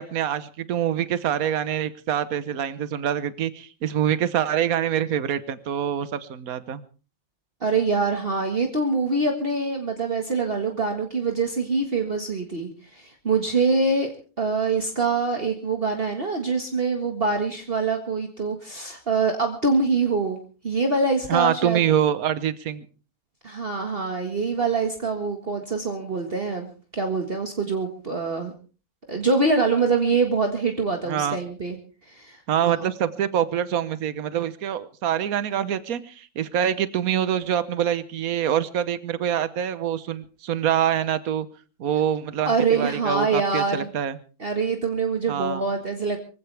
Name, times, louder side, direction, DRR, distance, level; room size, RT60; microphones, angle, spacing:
voice 1, 0.0-6.8 21.3-22.9 31.1-31.4 32.5-41.5 41.8-44.2 45.3-45.6, right 10 dB, 70° right, 14 dB, 1.4 m, -25 dB
voice 2, 7.6-20.4 20.6-21.8 23.4-26.7 26.9-28.5 29.1-31.8 32.1-32.4 32.6-32.9 42.5-43.9 44.4-46.2, right 4 dB, 40° right, 3 dB, 1.9 m, -24 dB
24.0 x 16.0 x 3.4 m, 0.36 s
omnidirectional pair, 1.6 m